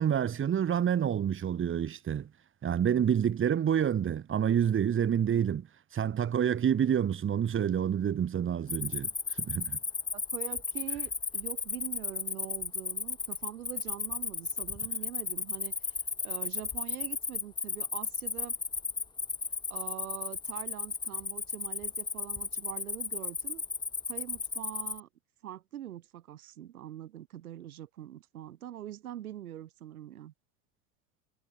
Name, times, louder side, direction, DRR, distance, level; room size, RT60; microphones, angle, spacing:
voice 1, 0.0-2.3 2.6-5.7 5.9-9.1 9.4-9.8, right 9 dB, 30° right, 5.6 m, -28 dB
Cricket, 8.7-25.0, left 5 dB, 10° left, 0.8 m, -34 dB
voice 2, 10.1-16.0 16.2-18.6 19.7-23.6 24.1-25.1 25.4-30.3, right 12 dB, 85° right, 5.1 m, -43 dB
hypercardioid pair, 110°, 42 cm